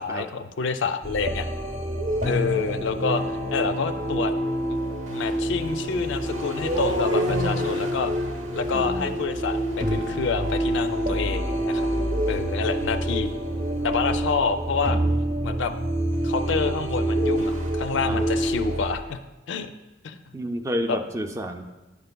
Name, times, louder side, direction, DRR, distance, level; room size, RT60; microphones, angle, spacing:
voice 1, 0.0-1.5 2.2-3.2 3.5-4.3 4.7-4.8 5.1-8.1 8.5-11.9 12.3-13.3 13.8-15.0 15.4-15.7 16.2-19.2 19.5-19.7 20.0-20.2 20.9-21.0, left 5 dB, 65° left, 9 dB, 0.4 m, -28 dB
sound 1, 1.0-19.0, right 1 dB, 40° right, 0.7 m, -27 dB
sound 2, 5.6-13.5, right 1 dB, 75° right, 0.9 m, -35 dB
voice 2, 8.7-9.1 18.0-18.2 20.3-21.7, equal, 15° right, 6 dB, 0.3 m, -30 dB
10.0 x 6.7 x 2.2 m, 1.1 s
head